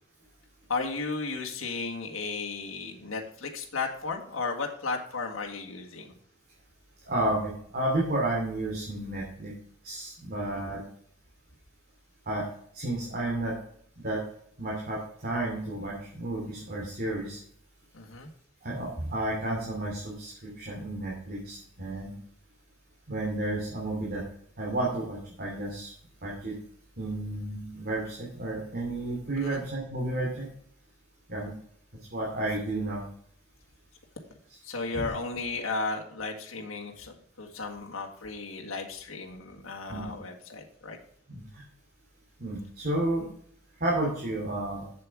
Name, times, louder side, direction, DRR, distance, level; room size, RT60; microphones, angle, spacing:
voice 1, 0.7-6.1 10.4-10.6 17.9-18.3 29.4-29.6 34.6-41.0, left 4 dB, 75° left, 1 dB, 1.8 m, -34 dB
voice 2, 7.1-9.5 9.8-10.8 12.3-12.4 12.7-13.5 14.0-14.2 14.6-17.4 18.6-22.1 23.1-24.2 24.6-25.9 26.2-26.6 27.0-30.5 31.3-31.5 32.1-33.0 34.9-35.1 39.9-40.0 41.3-41.6 42.4-43.3 43.8-44.8, right 1 dB, 50° right, -4 dB, 2.9 m, -31 dB
7.9 x 7.6 x 4.8 m, 0.63 s
head